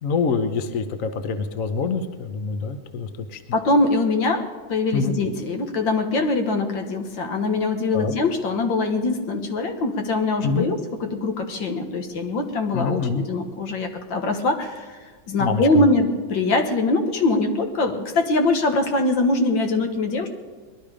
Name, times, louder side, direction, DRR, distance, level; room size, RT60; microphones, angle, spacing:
voice 1, 0.0-3.4 4.9-5.2 7.9-8.1 10.4-10.7 12.7-13.2 15.4-15.7, left 5 dB, 50° left, 8 dB, 1.1 m, -25 dB
voice 2, 3.5-4.4 4.7-10.8 11.0-15.0 15.3-20.3, left 2 dB, 70° left, 5 dB, 2.0 m, -22 dB
20.5 x 12.0 x 5.0 m, 1.4 s
omnidirectional pair, 2.2 m